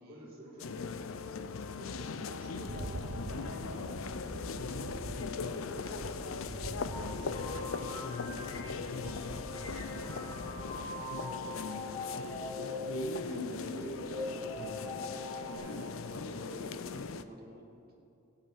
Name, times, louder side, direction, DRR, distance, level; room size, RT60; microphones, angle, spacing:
voice 1, 0.1-2.8 5.3-7.0 8.6-8.9, equal, 30° right, -4 dB, 3.5 m, -52 dB
sound 1, 0.6-17.2, left 5 dB, 75° left, 0.5 m, -40 dB
voice 2, 2.3-4.0 4.3-6.3 6.9-8.8 9.1-9.2 9.6-15.2 15.5-17.6, equal, 45° right, -2 dB, 2.5 m, -50 dB
Rattle, 2.5-10.9, right 2 dB, 85° right, 0.8 m, -45 dB
sound 2, 6.8-15.6, left 1 dB, 20° left, 1.7 m, -41 dB
16.0 x 5.6 x 9.4 m, 2.6 s
head